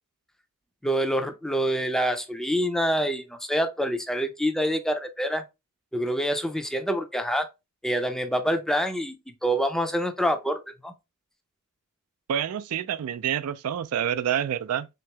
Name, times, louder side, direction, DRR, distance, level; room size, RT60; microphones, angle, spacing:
voice 1, 0.8-5.4 5.9-7.5 7.8-9.2 9.4-10.9, equal, ahead, 0.4 m, -26 dB
voice 2, 12.3-14.9, right 9 dB, 75° right, 0.3 m, -27 dB
3.7 x 2.9 x 3.2 m
head